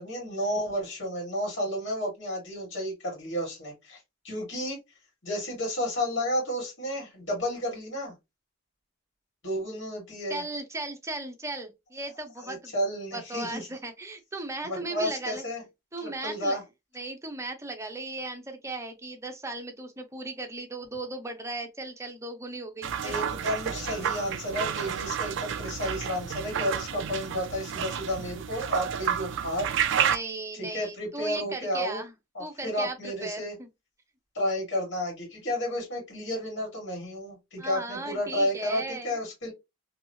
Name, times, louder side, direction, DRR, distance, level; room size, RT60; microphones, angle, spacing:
voice 1, 0.0-4.8 5.2-8.1 9.4-10.4 12.4-13.7 14.6-15.6 16.0-16.6 23.0-30.1 30.5-32.0 32.3-33.5 34.3-39.5, equal, 65° left, 1.8 m, -32 dB
voice 2, 10.3-12.7 13.1-15.4 15.9-16.6 16.9-23.1 30.0-32.1 32.4-33.7 37.6-39.2, right 2 dB, 15° right, 0.6 m, -37 dB
sound 1, 22.8-30.2, right 8 dB, 65° right, 0.3 m, -30 dB
2.9 x 2.7 x 2.7 m
head